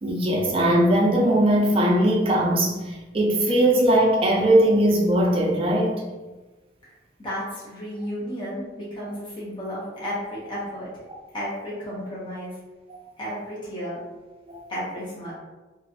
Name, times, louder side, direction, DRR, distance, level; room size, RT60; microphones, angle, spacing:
voice 1, 0.0-6.0 12.9-13.0 14.5-14.6, right 1 dB, 30° right, -1 dB, 0.4 m, -20 dB
voice 2, 6.8-10.9 11.3-12.6 13.2-14.0 14.7-15.3, equal, 25° left, -7 dB, 0.8 m, -33 dB
2.9 x 2.5 x 2.7 m, 1.2 s
head